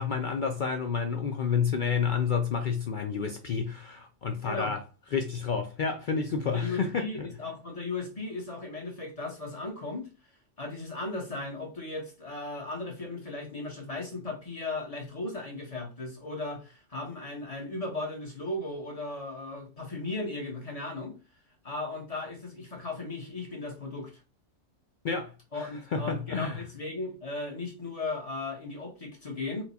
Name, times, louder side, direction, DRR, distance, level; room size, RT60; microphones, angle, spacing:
voice 1, 0.0-4.8 5.1-7.3 25.0-26.6, left 6 dB, 65° left, 0.5 m, -30 dB
voice 2, 6.5-10.1 10.6-21.2 21.6-24.1 25.5-29.6, left 2 dB, 30° left, 1.0 m, -36 dB
4.5 x 2.2 x 4.0 m
omnidirectional pair, 1.3 m